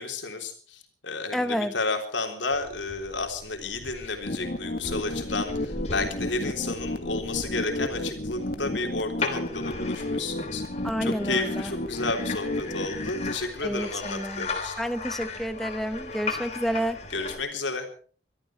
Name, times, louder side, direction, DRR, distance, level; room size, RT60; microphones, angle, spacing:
voice 1, 0.0-14.7 17.1-17.9, left 3 dB, 80° left, 4 dB, 3.5 m, -32 dB
voice 2, 1.3-1.7 10.8-11.7 13.6-14.5 14.8-17.0, equal, ahead, 10 dB, 0.7 m, -29 dB
sound 1, 2.5-17.4, left 4 dB, 35° left, 3.1 m, -38 dB
sound 2, 4.2-13.3, left 1 dB, 55° left, 1.6 m, -32 dB
23.0 x 13.5 x 4.5 m, 0.43 s
head